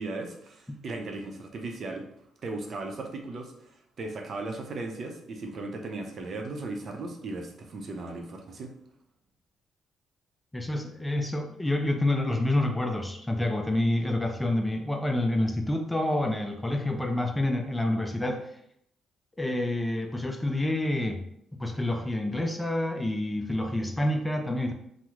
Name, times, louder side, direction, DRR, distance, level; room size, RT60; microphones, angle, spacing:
voice 1, 0.0-2.0 2.4-8.7, right 2 dB, 55° right, 3 dB, 0.5 m, -37 dB
voice 2, 10.5-18.5 19.4-21.2 21.6-24.7, left 1 dB, 10° left, 5 dB, 0.4 m, -28 dB
3.0 x 2.0 x 3.6 m, 0.73 s
cardioid pair, 90°, 0 cm